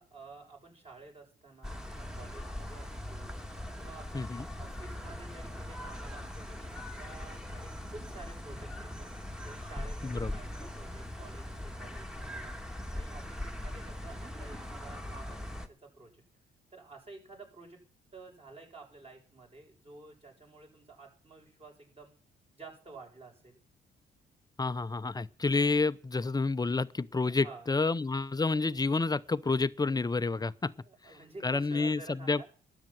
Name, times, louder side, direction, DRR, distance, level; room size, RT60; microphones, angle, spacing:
voice 1, 0.0-3.3 3.8-9.1 9.4-12.6 12.9-16.2 16.7-17.8 18.1-22.1 22.5-23.6 27.3-27.7 30.8-32.4, right 3 dB, 30° right, 7.7 m, -51 dB
sound 1, 1.6-15.7, left 1 dB, 5° right, 1.8 m, -41 dB
voice 2, 4.1-4.4 10.0-10.3 24.6-30.7 31.4-32.4, left 3 dB, 20° left, 0.7 m, -29 dB
13.0 x 9.5 x 7.7 m
cardioid pair, 90°, 20 cm